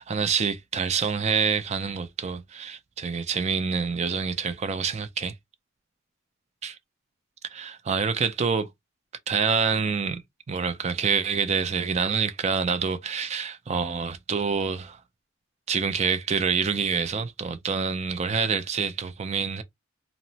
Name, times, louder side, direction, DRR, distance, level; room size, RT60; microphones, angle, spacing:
voice 1, 0.0-5.3 6.6-6.8 7.5-8.7 9.3-10.2 10.5-15.0 15.7-19.6, right 5 dB, 35° right, 0.4 m, -26 dB
2.9 x 2.1 x 2.7 m
head